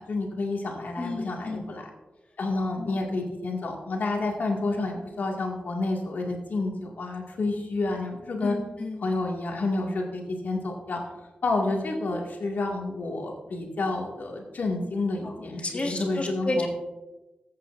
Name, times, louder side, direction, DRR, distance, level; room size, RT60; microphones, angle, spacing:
voice 1, 0.0-1.8 2.4-8.6 9.0-11.0 11.4-16.7, left 2 dB, 70° left, 0 dB, 2.1 m, -29 dB
voice 2, 1.0-1.7 2.6-3.0 8.4-9.0 15.2-15.3 15.6-16.7, left 2 dB, 40° left, 2 dB, 1.6 m, -32 dB
14.0 x 8.4 x 2.6 m, 1.1 s
cardioid pair, 60°, 3 cm